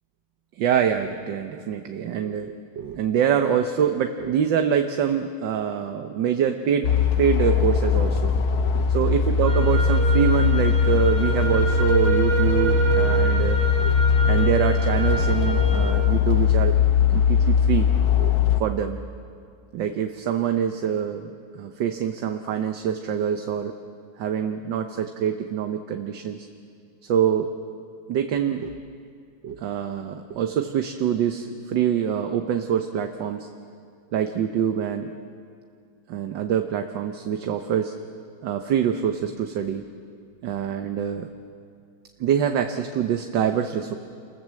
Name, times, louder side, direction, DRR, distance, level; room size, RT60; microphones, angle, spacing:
voice 1, 0.6-6.9 7.2-8.3 8.6-13.9 14.2-16.7 17.1-17.9 18.2-18.3 18.6-19.0 19.7-21.3 21.5-23.7 24.2-26.5 27.1-27.5 28.1-28.7 29.4-33.5 34.1-35.1 36.1-37.9 38.4-39.8 40.4-41.3 42.2-43.9, right 8 dB, 70° right, 6 dB, 1.6 m, -25 dB
sound 1, 6.8-18.6, left 6 dB, 60° left, 1.3 m, -20 dB
sound 2, 9.4-15.9, right 4 dB, 85° right, 4.3 m, -28 dB
28.0 x 20.5 x 7.6 m, 2.3 s
omnidirectional pair, 2.1 m